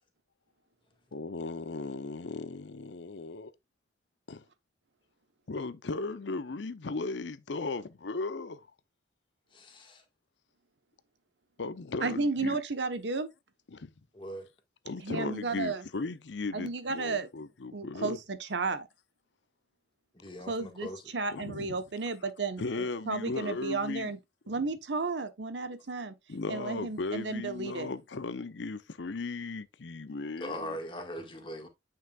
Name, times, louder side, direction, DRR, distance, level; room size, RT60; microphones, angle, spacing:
voice 1, 1.1-3.5 4.3-4.4 5.5-8.7 11.6-12.6 13.7-13.9 14.8-18.2 21.3-21.8 22.6-24.1 24.5-24.6 26.3-30.8, left 3 dB, 85° left, 0.7 m, -37 dB
voice 2, 9.5-10.0 14.1-14.5 20.1-21.0 30.4-31.7, equal, 30° left, 1.7 m, -40 dB
voice 3, 12.0-13.3 15.0-15.8 16.5-17.3 17.7-18.9 20.5-24.2 24.5-26.1 26.5-27.9, right 3 dB, 80° right, 1.1 m, -33 dB
9.3 x 5.6 x 2.4 m
head